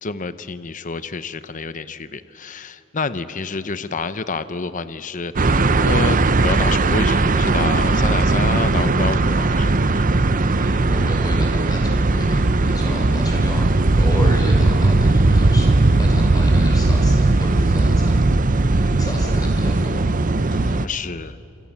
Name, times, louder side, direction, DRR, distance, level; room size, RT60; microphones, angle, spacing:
voice 1, 0.0-10.1 12.8-13.2 20.5-21.4, left 4 dB, 35° left, 13 dB, 0.8 m, -29 dB
sound 1, 5.4-20.9, right 2 dB, 40° right, 0.7 m, -17 dB
voice 2, 10.6-13.7 14.0-18.2 18.5-20.4, equal, 15° left, 1 dB, 5.5 m, -33 dB
28.0 x 27.5 x 7.4 m, 2.8 s
head